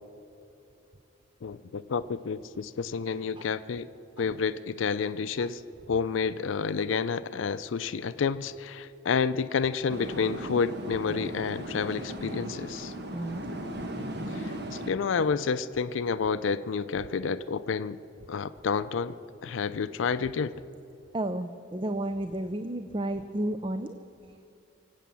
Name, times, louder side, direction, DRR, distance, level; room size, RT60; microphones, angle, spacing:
voice 1, 1.4-3.9 4.2-5.6 5.9-12.9 14.3-18.0 18.3-19.1 19.4-20.5, left 5 dB, 80° left, 14 dB, 0.4 m, -29 dB
sound 1, 9.9-14.9, right 1 dB, 55° right, 1.2 m, -37 dB
voice 2, 13.1-13.5 15.2-15.3 21.1-23.9, right 1 dB, 25° right, 9 dB, 0.5 m, -32 dB
24.0 x 8.4 x 7.1 m, 2.8 s
head